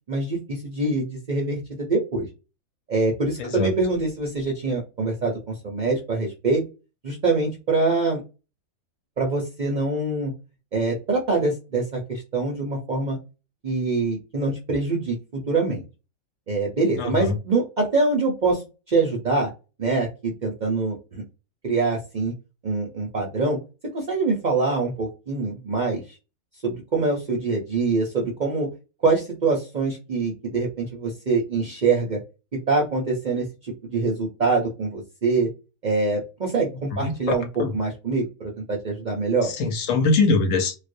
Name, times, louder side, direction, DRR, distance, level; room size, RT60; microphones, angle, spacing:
voice 1, 0.1-2.3 2.9-6.6 7.0-8.2 9.2-10.3 10.7-13.2 13.6-15.8 16.5-18.6 18.9-19.5 19.8-21.2 21.6-22.3 22.6-23.6 23.9-26.0 26.6-28.7 29.0-32.2 32.7-35.5 35.8-39.5, right 3 dB, 50° right, 0.5 m, -24 dB
voice 2, 3.4-3.7 17.0-17.3 37.0-37.1 37.6-37.7 39.4-40.8, left 3 dB, 70° left, 1.0 m, -22 dB
2.4 x 2.0 x 2.5 m
omnidirectional pair, 1.4 m